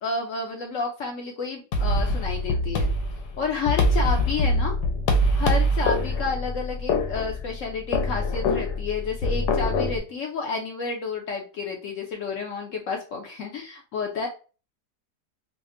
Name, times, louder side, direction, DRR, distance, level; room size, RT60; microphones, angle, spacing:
voice 1, 0.0-2.9 3.4-4.8 5.1-14.3, left 4 dB, 70° left, 1 dB, 0.8 m, -30 dB
sound 1, 1.7-10.0, left 1 dB, 90° left, 1.2 m, -24 dB
4.9 x 2.0 x 2.4 m, 0.35 s
omnidirectional pair, 1.8 m